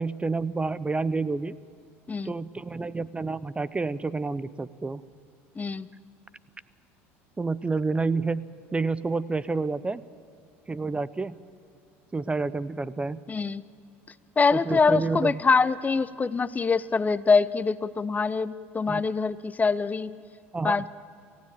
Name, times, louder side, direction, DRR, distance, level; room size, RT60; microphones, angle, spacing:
voice 1, 0.0-1.6 2.2-5.0 7.4-10.0 10.7-11.4 12.1-13.2 14.7-15.3 18.9-19.0 20.5-20.8, right 3 dB, 15° right, 18 dB, 0.7 m, -29 dB
voice 2, 5.5-5.9 13.3-13.6 14.4-20.2 20.6-20.9, left 4 dB, 20° left, 17 dB, 0.8 m, -24 dB
28.0 x 16.0 x 9.0 m, 2.5 s
hypercardioid pair, 80°, 7 cm